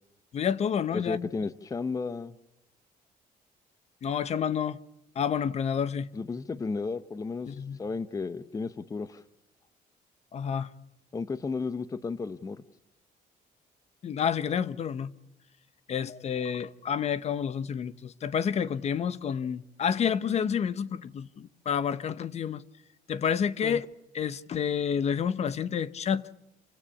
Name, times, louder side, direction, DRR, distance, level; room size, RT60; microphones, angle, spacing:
voice 1, 0.3-1.3 4.0-4.8 5.1-6.1 7.5-7.8 10.3-10.7 14.0-15.1 15.9-22.6 23.1-23.9 24.1-26.2, left 7 dB, 45° left, 1.0 m, -29 dB
voice 2, 0.9-2.3 6.1-7.5 7.8-9.2 11.1-12.6 23.6-23.8, left 4 dB, 20° left, 0.8 m, -33 dB
28.5 x 17.0 x 8.5 m
cardioid pair, 145°, 16 cm